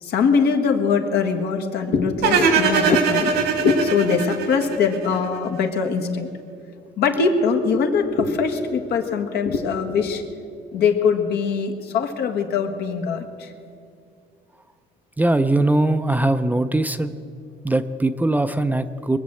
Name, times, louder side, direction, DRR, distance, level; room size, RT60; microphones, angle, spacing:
voice 1, 0.0-6.3 7.0-13.5, left 5 dB, 75° left, 5 dB, 1.5 m, -22 dB
sound 1, 2.2-5.4, right 6 dB, 80° right, 1.8 m, -21 dB
voice 2, 15.2-17.1 17.6-19.2, right 2 dB, 10° right, 10 dB, 0.5 m, -20 dB
22.0 x 7.4 x 7.7 m, 2.4 s
cardioid pair, 110°, 17 cm